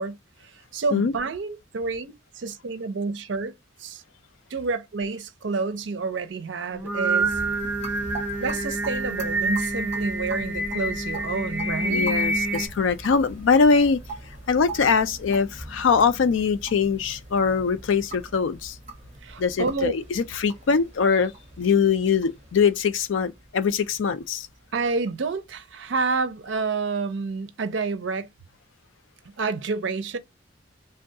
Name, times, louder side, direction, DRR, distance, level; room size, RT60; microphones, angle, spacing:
voice 1, 0.0-4.0 4.5-7.4 8.4-12.1 19.2-19.9 24.7-28.3 29.4-30.2, right 4 dB, 65° right, 0.5 m, -29 dB
Singing, 6.7-12.7, right 1 dB, 10° right, 0.6 m, -27 dB
sound 1, 7.2-26.4, right 2 dB, 35° right, 0.9 m, -42 dB
voice 2, 11.9-14.0 14.5-18.8 19.4-21.3 21.6-24.5, left 5 dB, 75° left, 0.4 m, -22 dB
3.4 x 2.3 x 2.6 m
head